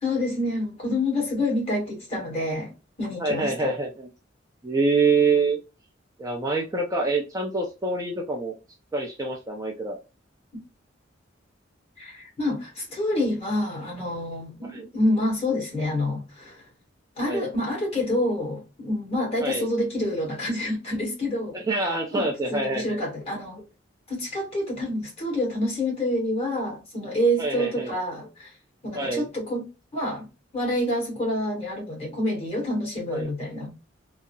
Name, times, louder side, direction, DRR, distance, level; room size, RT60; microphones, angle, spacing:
voice 1, 0.0-2.7 3.0-3.7 12.0-16.6 17.2-23.6 24.1-28.5 28.8-29.6 29.9-30.3 30.5-33.7, left 1 dB, 35° left, 1.6 m, -27 dB
voice 2, 3.2-4.1 4.6-5.6 6.2-8.5 8.9-10.0 14.7-14.9 17.2-17.4 19.4-19.7 21.5-23.0 27.4-28.0 28.9-29.3 33.1-33.3, right 3 dB, 20° right, 0.4 m, -26 dB
3.7 x 2.1 x 2.2 m
head